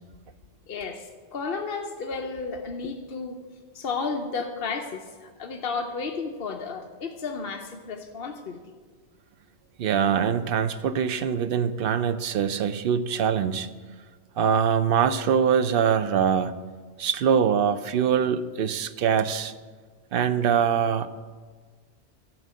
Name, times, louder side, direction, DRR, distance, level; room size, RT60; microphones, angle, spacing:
voice 1, 0.7-3.4 3.7-8.6, left 4 dB, 60° left, 3 dB, 0.9 m, -33 dB
voice 2, 9.8-13.7 14.4-16.5 17.0-19.5 20.1-21.1, right 7 dB, 65° right, 12 dB, 0.7 m, -23 dB
13.0 x 4.7 x 7.5 m, 1.5 s
omnidirectional pair, 1.2 m